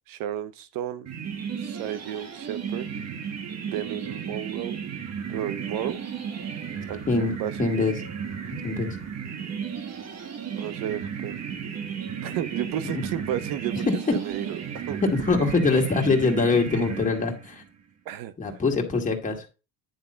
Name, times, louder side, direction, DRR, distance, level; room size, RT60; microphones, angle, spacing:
voice 1, 0.1-1.1 1.6-2.9 3.6-4.8 5.3-6.0 6.9-7.9 10.5-11.4 12.2-15.0 18.1-18.3, right 11 dB, 70° right, 0.8 m, -33 dB
sound 1, 1.1-17.6, right 7 dB, 45° right, 1.5 m, -34 dB
voice 2, 7.6-7.9 8.6-9.0 12.9-13.0 13.7-14.1 15.0-17.6 18.4-19.5, left 3 dB, 20° left, 2.3 m, -23 dB
10.5 x 3.6 x 5.6 m
cardioid pair, 115°, 35 cm